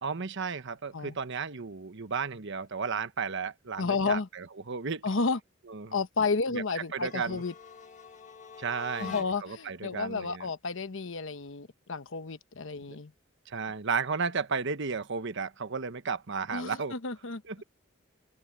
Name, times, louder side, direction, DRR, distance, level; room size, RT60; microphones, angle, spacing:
voice 1, 0.0-5.1 5.7-6.0 6.5-6.6 6.9-7.4 8.6-10.5 12.9-13.0 13.5-16.9 17.5-17.6, right 5 dB, 60° right, 1.1 m, -34 dB
voice 2, 3.8-4.3 5.0-5.4 5.9-7.5 9.0-13.1 16.5-17.4, left 4 dB, 65° left, 1.0 m, -31 dB
sound 1, 6.9-9.7, left 7 dB, 35° left, 1.4 m, -46 dB
open air
head